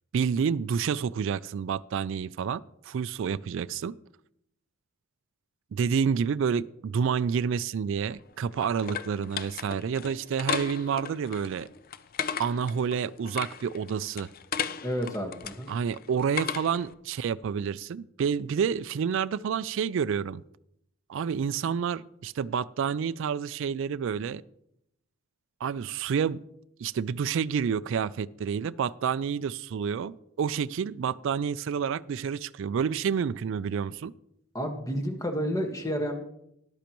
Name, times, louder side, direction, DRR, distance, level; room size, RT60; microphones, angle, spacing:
voice 1, 0.1-3.9 5.7-11.7 12.4-14.3 15.7-20.4 21.1-24.4 25.6-26.4 26.8-34.1, right 7 dB, 65° right, 16 dB, 0.3 m, -29 dB
sound 1, 7.9-16.9, left 7 dB, 45° left, 0.5 m, -36 dB
voice 2, 14.8-15.7 34.5-36.2, equal, 15° left, 3 dB, 1.5 m, -30 dB
13.5 x 11.5 x 3.0 m, 0.78 s
head